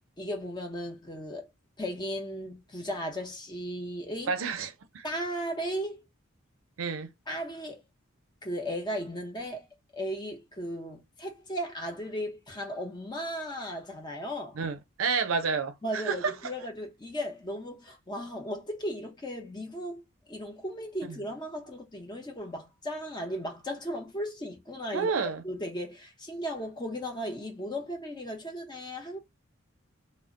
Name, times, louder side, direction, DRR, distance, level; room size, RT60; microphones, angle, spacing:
voice 1, 0.2-1.5 1.8-4.3 5.0-6.1 7.3-7.8 8.4-9.7 9.9-14.6 15.8-25.1 25.4-29.2, equal, 20° left, 0.7 m, -36 dB
voice 2, 4.3-5.0 6.8-7.1 14.6-16.3 21.0-21.2 24.9-25.4, right 5 dB, 85° right, 0.5 m, -30 dB
2.1 x 2.1 x 3.6 m
head